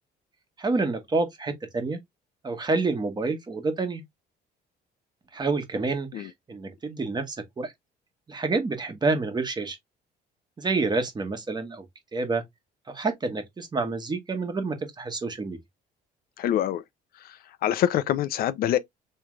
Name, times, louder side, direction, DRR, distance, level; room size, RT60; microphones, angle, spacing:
voice 1, 0.6-2.0 2.4-4.0 5.3-7.7 8.3-9.8 10.6-11.8 12.1-12.4 12.9-15.6, right 3 dB, 25° right, 1.3 m, -28 dB
voice 2, 16.4-16.8 17.2-18.8, left 11 dB, 60° left, 0.5 m, -25 dB
3.5 x 3.3 x 3.1 m
cardioid pair, 110°, 17 cm